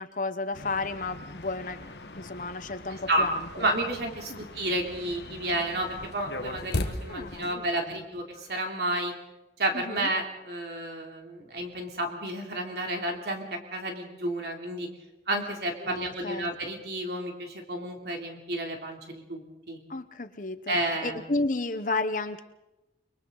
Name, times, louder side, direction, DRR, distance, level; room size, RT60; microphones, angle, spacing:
voice 1, 0.0-3.7 4.3-4.5 7.1-8.1 9.7-10.1 15.8-16.5 19.9-22.4, left 3 dB, 45° left, 10 dB, 1.0 m, -33 dB
sound 1, 0.5-7.5, left 2 dB, 75° left, 1.4 m, -39 dB
voice 2, 3.5-9.1 9.6-14.9 15.3-19.8 20.7-21.2, right 1 dB, 65° right, 2 dB, 3.2 m, -31 dB
29.5 x 22.5 x 4.0 m, 0.96 s
head